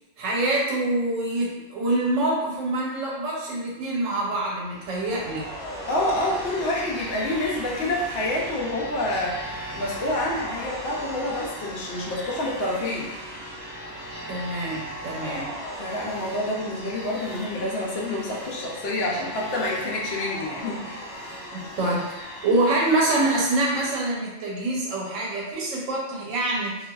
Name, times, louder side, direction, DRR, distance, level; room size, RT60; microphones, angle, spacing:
voice 1, 0.2-5.5 14.3-15.9 21.5-26.8, right 2 dB, 90° right, -4 dB, 1.1 m, -26 dB
sound 1, 4.5-24.0, equal, 5° right, 0.7 m, -37 dB
voice 2, 5.9-13.1 15.3-15.4 15.8-21.1, left 1 dB, 65° left, -4 dB, 0.7 m, -28 dB
2.4 x 2.3 x 2.2 m, 1.0 s
omnidirectional pair, 1.3 m